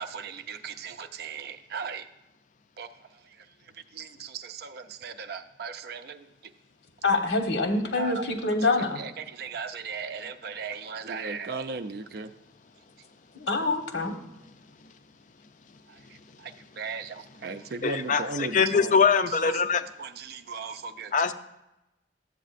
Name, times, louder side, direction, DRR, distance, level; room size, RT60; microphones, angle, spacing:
voice 1, 0.0-2.1 2.8-6.5 7.9-8.2 8.8-12.3 15.9-19.6 20.0-21.1, right 5 dB, 55° right, 10 dB, 0.4 m, -37 dB
voice 2, 7.0-9.0 13.3-14.1, left 3 dB, 80° left, 4 dB, 1.2 m, -25 dB
voice 3, 17.8-19.8 21.1-21.3, left 5 dB, 45° left, 10 dB, 0.4 m, -23 dB
12.0 x 8.0 x 2.5 m, 0.95 s
head